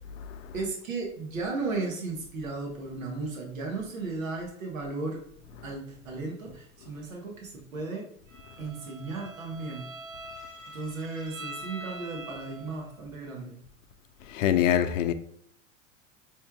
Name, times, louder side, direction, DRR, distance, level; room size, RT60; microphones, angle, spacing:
voice 1, 0.5-5.2 5.6-8.1 8.6-9.9 10.7-13.6, right 3 dB, 85° right, 1.1 m, -35 dB
Bowed string instrument, 8.3-13.0, right 1 dB, 50° right, 1.1 m, -44 dB
voice 2, 14.3-15.1, left 10 dB, 70° left, 0.5 m, -24 dB
4.4 x 3.2 x 2.2 m
hypercardioid pair, 95°, 39 cm